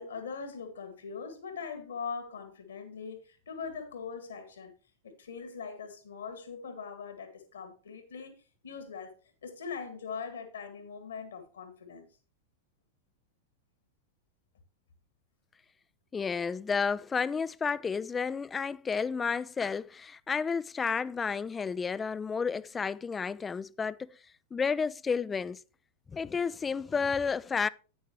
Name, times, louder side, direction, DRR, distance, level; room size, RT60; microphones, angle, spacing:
voice 1, 0.0-4.7 5.0-8.3 8.6-9.2 9.4-12.1, left 5 dB, 70° left, 1.9 m, -41 dB
voice 2, 16.1-24.1 24.5-25.6 26.1-27.7, left 5 dB, 15° left, 0.4 m, -31 dB
10.5 x 9.2 x 3.0 m
figure-of-eight pair, 90°, 0 cm